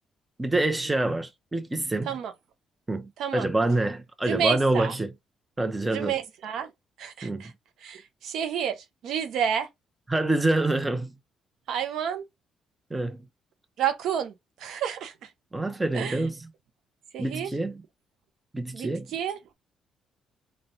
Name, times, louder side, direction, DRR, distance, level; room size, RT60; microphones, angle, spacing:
voice 1, 0.4-2.1 2.9-5.1 5.6-6.1 7.2-7.4 10.1-11.1 12.9-13.3 15.5-16.5 17.2-17.8 18.5-19.1, right 2 dB, 15° right, 0.7 m, -26 dB
voice 2, 4.3-4.9 5.9-6.7 7.0-7.5 7.8-9.7 11.7-12.2 13.8-15.3 15.9-16.2 17.1-17.5 18.7-19.4, right 8 dB, 75° right, 0.6 m, -30 dB
4.1 x 2.2 x 3.7 m
supercardioid pair, 70°, 0 cm